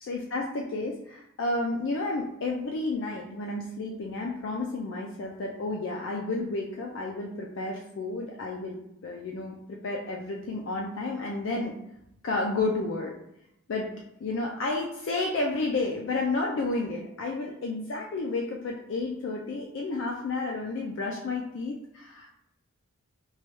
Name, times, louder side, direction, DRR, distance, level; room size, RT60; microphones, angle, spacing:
voice 1, 0.0-8.8 9.0-11.7 12.2-13.1 13.7-13.9 14.2-22.3, left 3 dB, 55° left, -1 dB, 0.3 m, -31 dB
3.1 x 2.2 x 2.9 m, 0.81 s
head